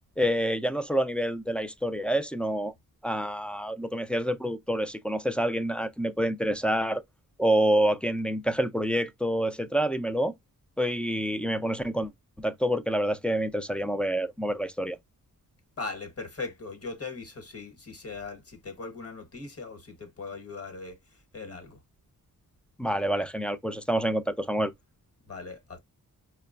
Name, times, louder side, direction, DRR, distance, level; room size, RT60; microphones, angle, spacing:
voice 1, 0.2-2.7 3.0-7.0 7.4-10.3 10.8-12.1 12.4-15.0 22.8-24.7, right 1 dB, 5° left, 0.3 m, -27 dB
voice 2, 15.8-21.0 21.3-21.8 25.3-25.8, left 4 dB, 40° left, 1.2 m, -39 dB
4.7 x 2.2 x 2.4 m
wide cardioid pair, 110°, 35 cm